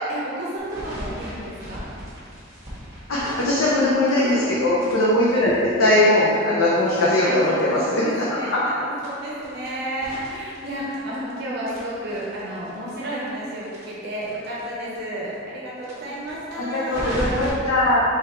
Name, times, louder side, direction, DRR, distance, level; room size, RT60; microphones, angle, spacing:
voice 1, 0.0-1.9 3.4-3.5 4.2-4.6 7.2-17.2, right 1 dB, 55° right, -6 dB, 0.7 m, -32 dB
sound 1, 0.6-4.5 4.8-7.8 8.1-8.2 8.4-8.5 8.9-11.3 11.6-14.6 14.9-15.0 15.3-15.4 15.8-17.5, equal, 20° right, 1.4 m, -36 dB
voice 2, 3.1-8.2 16.6-18.0, left 1 dB, 90° left, -7 dB, 0.7 m, -20 dB
3.6 x 3.4 x 4.3 m, 2.6 s
head